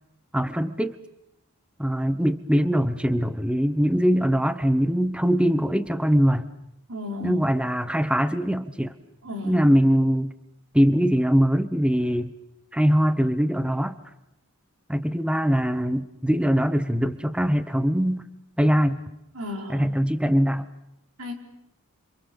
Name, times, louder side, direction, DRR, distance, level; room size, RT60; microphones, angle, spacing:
voice 1, 0.3-1.0 1.8-6.5 7.2-8.9 9.4-10.3 10.7-12.3 12.7-14.0 14.9-18.3 18.6-19.0 19.7-20.6, equal, 5° right, 11 dB, 1.1 m, -22 dB
voice 2, 6.9-7.4 9.2-9.6 19.3-19.9 21.2-21.4, left 2 dB, 70° right, 3 dB, 5.0 m, -34 dB
27.5 x 26.5 x 7.2 m, 0.84 s
head